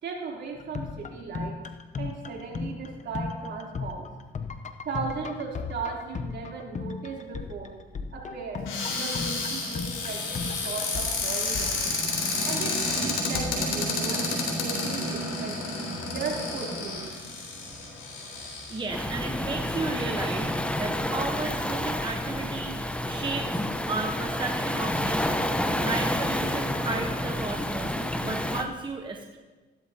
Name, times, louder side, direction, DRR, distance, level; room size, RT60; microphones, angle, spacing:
voice 1, 0.0-1.6 2.0-4.1 4.8-7.7 8.1-11.8 12.4-15.5 15.9-17.0, right 4 dB, 65° right, -3 dB, 3.3 m, -36 dB
sound 1, 0.5-12.5 13.3-14.0, left 5 dB, 35° left, 0.8 m, -37 dB
Cupboard open or close, 8.6-19.0 19.7-19.8 20.0-20.4, left 3 dB, 90° left, 3.4 m, -30 dB
voice 2, 18.7-20.5 20.8-23.6 23.9-27.9 28.2-29.4, right 3 dB, 25° right, 2 dB, 1.0 m, -34 dB
Waves surf, 18.9-28.7, left 1 dB, 5° left, 0.8 m, -29 dB
14.5 x 12.5 x 2.8 m, 1.2 s
cardioid pair, 90°, 20 cm